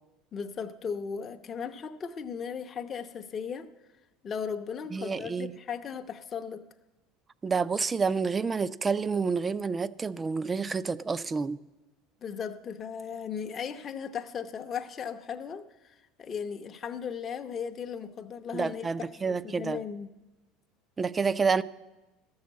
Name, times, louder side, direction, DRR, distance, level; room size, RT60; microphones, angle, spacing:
voice 1, 0.3-3.7 4.2-6.6 12.2-20.1, left 7 dB, 35° left, 0.7 m, -37 dB
voice 2, 4.9-5.6 7.4-11.6 18.5-19.8 21.0-21.6, right 5 dB, 20° right, 0.4 m, -29 dB
13.0 x 6.4 x 8.2 m
supercardioid pair, 110°, 0 cm